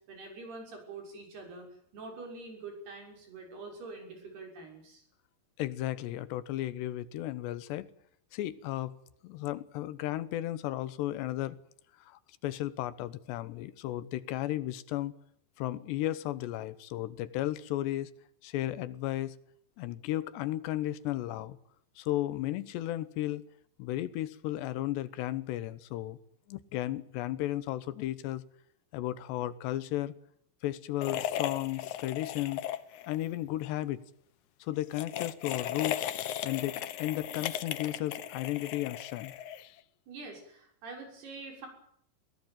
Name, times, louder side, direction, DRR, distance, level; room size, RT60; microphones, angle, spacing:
voice 1, 0.1-1.7 1.9-5.0 40.1-41.7, right 3 dB, 70° right, 2 dB, 8.2 m, -45 dB
voice 2, 5.6-7.9 8.3-9.0 9.2-11.6 12.1-15.1 15.6-18.1 18.4-19.4 19.8-21.6 22.0-23.4 23.8-26.2 26.5-28.4 28.9-30.1 30.6-32.6 33.1-34.0 34.6-36.1 36.4-39.8, left 14 dB, 85° left, 15 dB, 3.3 m, -34 dB
sound 1, 31.0-33.2 33.5-33.7 34.8-39.8, left 11 dB, 70° left, 1.9 m, -36 dB
22.0 x 18.0 x 9.2 m, 0.69 s
omnidirectional pair, 4.8 m